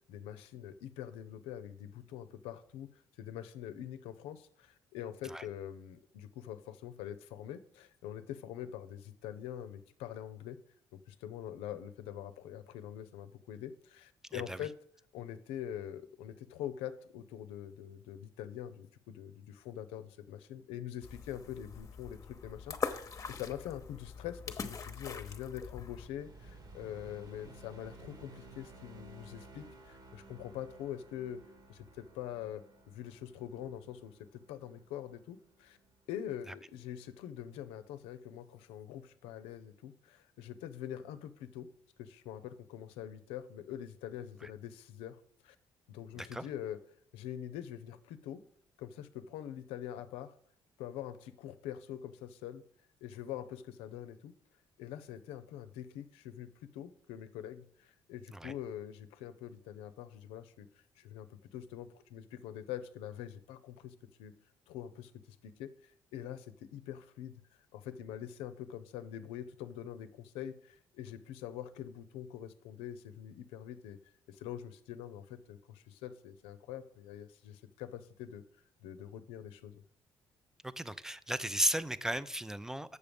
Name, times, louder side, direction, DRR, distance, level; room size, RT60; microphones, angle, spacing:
voice 1, 0.1-2.9 3.2-10.6 11.1-14.7 15.1-31.4 31.7-35.8 36.1-41.7 42.0-45.2 45.4-45.6 45.9-46.8 47.1-48.4 48.8-50.3 50.8-52.6 53.0-54.3 54.8-60.7 61.0-64.3 64.7-67.3 67.7-74.0 74.3-78.4 78.8-79.8, left 10 dB, 90° left, 0.6 m, -44 dB
voice 2, 14.3-14.7 46.1-46.4 58.3-58.5 80.6-83.0, right 1 dB, 5° right, 0.5 m, -35 dB
sound 1, 21.0-26.1, left 5 dB, 35° left, 0.9 m, -42 dB
sound 2, 26.0-36.5, right 2 dB, 45° right, 1.4 m, -56 dB
7.0 x 6.7 x 5.2 m
supercardioid pair, 75°, 9 cm